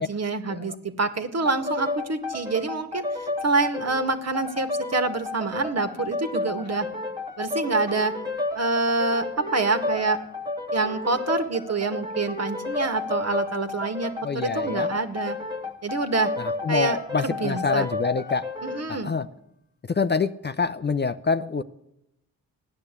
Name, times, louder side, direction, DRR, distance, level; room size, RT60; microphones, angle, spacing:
voice 1, 0.0-6.9 7.4-8.1 8.5-10.2 10.7-15.4 15.8-16.3 16.7-17.9 18.6-19.1, right 3 dB, 45° right, 8 dB, 1.8 m, -26 dB
sound 1, 1.5-18.9, left 2 dB, 10° right, 1.7 m, -31 dB
voice 2, 14.2-14.9 16.4-18.4 18.9-19.2 19.9-21.6, left 5 dB, 30° left, 10 dB, 0.6 m, -26 dB
15.0 x 10.0 x 8.3 m, 0.83 s
cardioid pair, 60°, 36 cm